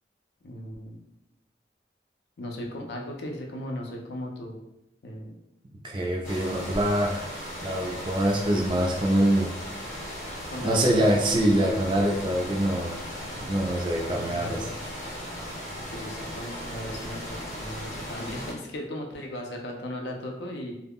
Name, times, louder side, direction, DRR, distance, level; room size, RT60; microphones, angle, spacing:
voice 1, 0.4-1.0 2.4-4.6 5.0-5.3 10.5-11.1 14.0-14.7 15.9-20.7, left 1 dB, 75° left, 1 dB, 0.5 m, -37 dB
voice 2, 5.8-7.3 7.6-9.5 10.6-13.0 13.4-14.7, right 1 dB, 25° right, 0 dB, 0.3 m, -24 dB
sound 1, 6.2-18.5, equal, 40° left, 0.7 m, -37 dB
2.3 x 2.0 x 3.5 m, 0.89 s
head